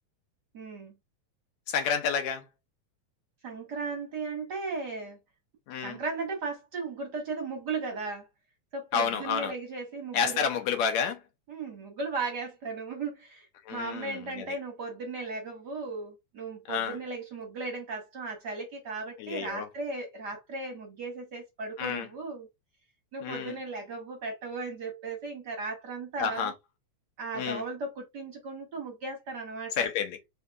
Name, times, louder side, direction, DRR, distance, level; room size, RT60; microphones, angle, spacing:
voice 1, 0.5-0.9 3.4-5.2 5.8-8.3 8.7-10.4 11.5-22.5 23.1-26.5 27.2-29.9, right 3 dB, 55° right, 1.1 m, -36 dB
voice 2, 1.7-2.4 5.7-6.0 8.9-9.5 10.1-11.2 13.7-14.5 16.7-17.0 19.2-19.7 21.8-22.1 23.2-23.5 26.2-26.5 27.4-27.6 29.8-30.2, left 7 dB, 70° left, 2.2 m, -30 dB
5.0 x 2.7 x 3.4 m
omnidirectional pair, 3.4 m